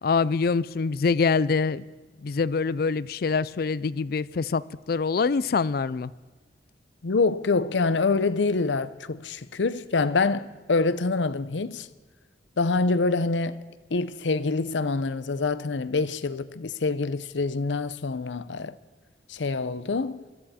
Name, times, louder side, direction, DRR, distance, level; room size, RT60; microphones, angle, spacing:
voice 1, 0.0-1.8 2.2-4.6 4.9-6.1, left 4 dB, 55° left, 0.4 m, -24 dB
voice 2, 7.0-11.9 12.6-13.6 13.9-18.8 19.3-20.2, left 3 dB, 90° left, 0.7 m, -26 dB
22.0 x 13.5 x 4.3 m
head